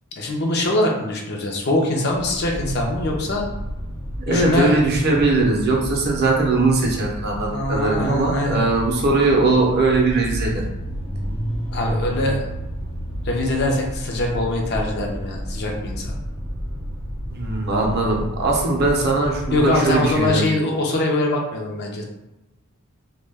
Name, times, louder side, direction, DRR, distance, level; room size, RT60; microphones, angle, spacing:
voice 1, 0.2-3.5 4.3-4.7 7.5-8.7 11.7-12.5 13.2-16.1 19.5-22.0, left 1 dB, 45° left, 0 dB, 0.4 m, -23 dB
sound 1, 2.1-20.4, equal, 70° left, 0.9 m, -31 dB
voice 2, 4.3-10.6 17.3-20.5, right 3 dB, 45° right, -1 dB, 0.5 m, -20 dB
2.2 x 2.1 x 3.3 m, 0.96 s
head